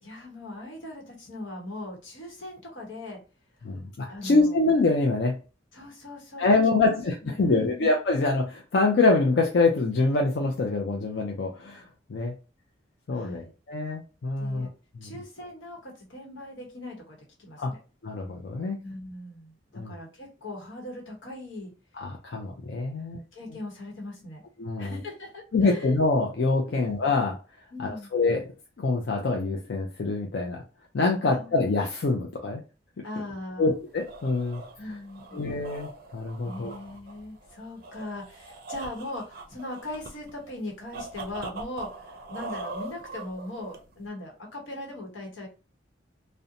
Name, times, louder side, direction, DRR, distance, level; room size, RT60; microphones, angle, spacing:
voice 1, 0.0-3.2 4.1-4.6 5.7-6.4 6.8-7.0 7.2-7.9 13.1-13.5 14.4-14.7 15.0-17.8 18.8-21.7 23.0-24.4 24.8-25.9 26.7-26.8 27.7-28.1 31.2-31.6 33.0-33.7 34.8-35.4 36.4-45.5, left 1 dB, 90° left, 0 dB, 1.0 m, -39 dB
voice 2, 3.6-5.4 6.4-12.3 13.1-14.7 14.9-15.1 17.6-17.7 18.0-18.8 19.7-19.9 21.9-23.2 24.6-25.0 25.5-27.4 27.8-28.5 28.8-30.6 30.9-32.6 33.6-35.0 35.3-36.7, left 3 dB, 65° left, 0 dB, 0.4 m, -25 dB
sound 1, 33.7-44.1, right 3 dB, 50° right, 0.4 m, -42 dB
2.5 x 2.1 x 2.7 m, 0.33 s
head